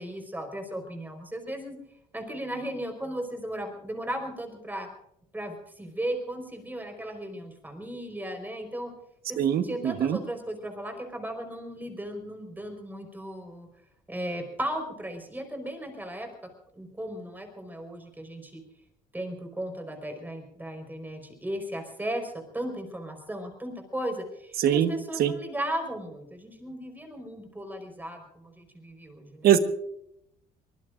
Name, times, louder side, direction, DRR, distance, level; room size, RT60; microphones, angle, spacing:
voice 1, 0.0-1.7 2.1-4.9 5.3-8.9 9.3-13.7 14.1-16.3 16.7-18.6 19.1-29.4, right 1 dB, 10° right, 4 dB, 4.9 m, -36 dB
voice 2, 9.4-10.2 24.6-24.9 25.2-25.3 29.4-29.6, right 10 dB, 65° right, 9 dB, 1.4 m, -22 dB
24.0 x 20.0 x 2.6 m, 0.75 s
cardioid pair, 110°, 17 cm